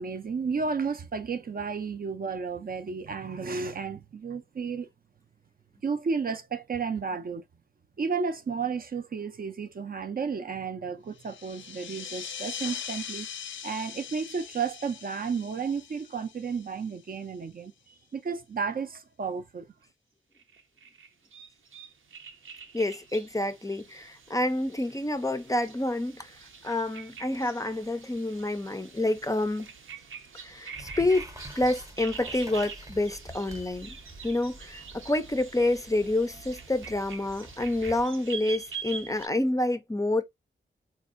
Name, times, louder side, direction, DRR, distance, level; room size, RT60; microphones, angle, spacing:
voice 1, 0.0-4.9 5.8-7.4 8.0-13.3 13.6-19.7, right 5 dB, 45° right, 0.4 m, -32 dB
sound 1, 11.2-17.3, left 8 dB, 70° left, 0.5 m, -41 dB
sound 2, 20.4-39.3, right 5 dB, 85° right, 0.7 m, -45 dB
voice 2, 22.7-26.3 26.6-29.7 30.4-31.3 31.6-34.0 34.2-40.2, left 1 dB, 15° left, 0.4 m, -28 dB
sound 3, 30.7-38.0, right 1 dB, 15° right, 0.7 m, -47 dB
4.1 x 2.6 x 2.5 m
wide cardioid pair, 135°, 20 cm